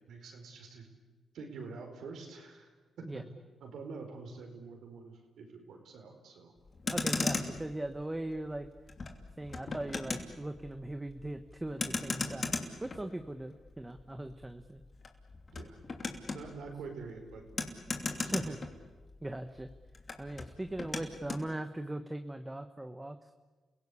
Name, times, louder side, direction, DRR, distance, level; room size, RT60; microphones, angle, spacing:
voice 1, 0.1-0.9 1.3-2.7 3.0-3.2 3.6-6.5 15.5-15.8 16.3-17.5 18.2-18.6, right 4 dB, 80° right, 4 dB, 4.8 m, -46 dB
Motor vehicle (road), 6.7-19.3 19.6-21.5, left 3 dB, 45° left, 2.9 m, -38 dB
voice 2, 6.9-8.7 9.4-12.5 12.8-14.8 18.3-18.7 19.2-19.7 20.2-23.3, right 1 dB, 15° right, 8 dB, 1.3 m, -39 dB
30.0 x 17.0 x 8.5 m, 1.3 s
cardioid pair, 65°, 0 cm